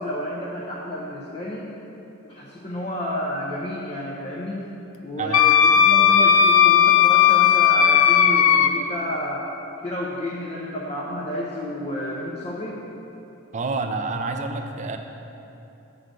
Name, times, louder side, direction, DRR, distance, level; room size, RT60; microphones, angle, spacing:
voice 1, 0.0-1.6 2.2-4.7 5.0-9.5 9.8-12.8, left 1 dB, 30° left, -5 dB, 0.6 m, -31 dB
voice 2, 5.2-5.5 13.5-15.0, right 3 dB, 35° right, 5 dB, 0.4 m, -28 dB
Wind instrument woodwind instrument, 5.3-8.7, left 8 dB, 70° left, 0.4 m, -15 dB
7.5 x 3.8 x 6.5 m, 2.9 s
head